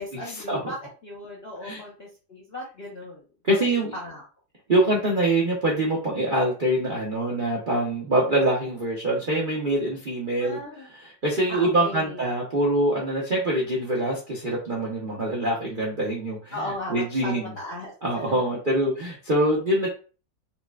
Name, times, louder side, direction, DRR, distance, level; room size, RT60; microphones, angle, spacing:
voice 1, 0.0-3.6 3.9-4.2 10.4-10.9 11.5-12.3 16.5-18.6, left 1 dB, 55° left, -3 dB, 0.7 m, -37 dB
voice 2, 3.4-3.9 4.7-10.6 11.2-16.5 16.9-17.5 18.0-19.9, right 1 dB, 55° right, -4 dB, 0.5 m, -24 dB
5.6 x 2.1 x 2.3 m, 0.36 s
omnidirectional pair, 1.9 m